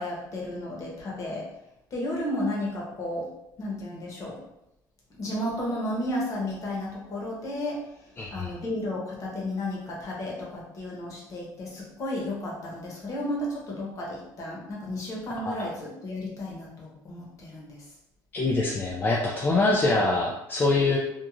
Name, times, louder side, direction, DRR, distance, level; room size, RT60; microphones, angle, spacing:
voice 1, 0.0-1.4 1.9-3.3 3.6-4.4 5.2-7.8 8.3-17.8, left 1 dB, 40° left, -3 dB, 0.9 m, -33 dB
voice 2, 8.2-8.5 15.6-15.7 18.3-21.0, left 2 dB, 25° left, -3 dB, 0.3 m, -24 dB
2.9 x 2.4 x 2.4 m, 0.88 s
cardioid pair, 140°, 8 cm